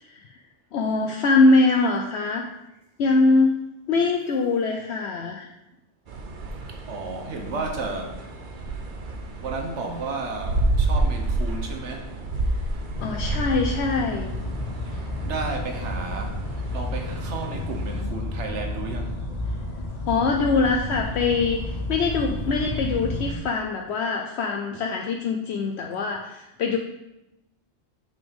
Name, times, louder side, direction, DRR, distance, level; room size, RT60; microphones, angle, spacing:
voice 1, 0.7-2.4 3.0-3.5 3.9-5.5 13.0-14.3 20.1-21.6 21.9-26.8, left 3 dB, 70° left, 0.9 m, -22 dB
sound 1, 6.1-18.0, right 2 dB, 50° right, 0.9 m, -30 dB
voice 2, 6.9-8.2 9.4-12.1 15.2-16.4 16.7-19.2, right 3 dB, 80° right, 1.3 m, -32 dB
sound 2, 12.9-23.3, left 1 dB, 40° left, 0.9 m, -31 dB
7.1 x 5.9 x 3.5 m
omnidirectional pair, 1.2 m